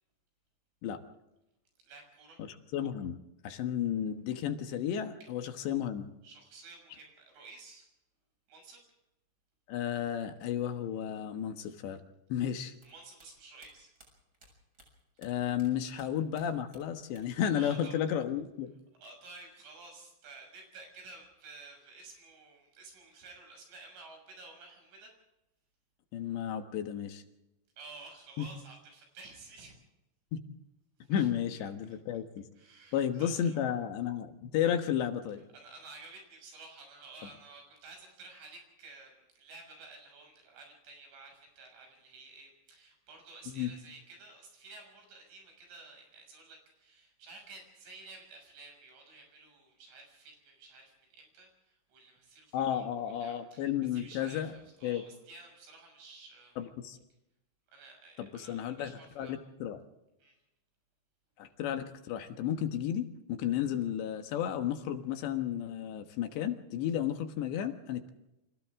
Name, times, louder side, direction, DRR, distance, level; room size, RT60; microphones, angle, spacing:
voice 1, 1.8-2.4 5.2-5.3 6.2-7.9 8.5-8.8 12.8-13.9 17.5-18.0 19.0-25.1 27.8-29.8 31.0-31.3 31.9-32.0 32.6-33.6 35.5-52.8 53.1-56.6 57.7-59.4 60.2-60.4, right 3 dB, 85° right, 2 dB, 9.0 m, -52 dB
voice 2, 2.4-3.2 3.4-6.1 9.7-12.0 12.3-12.7 15.2-18.7 26.1-27.2 28.4-28.5 30.3-30.4 31.1-32.5 32.9-35.4 43.5-43.7 52.5-54.5 54.8-55.0 56.6-57.0 58.2-59.8 61.4-68.1, left 9 dB, 75° left, 7 dB, 3.5 m, -33 dB
sound 1, 12.7-15.7 15.9-17.5 17.7-18.5, right 1 dB, 20° right, 7.2 m, -60 dB
29.5 x 26.0 x 3.7 m, 0.89 s
omnidirectional pair, 5.4 m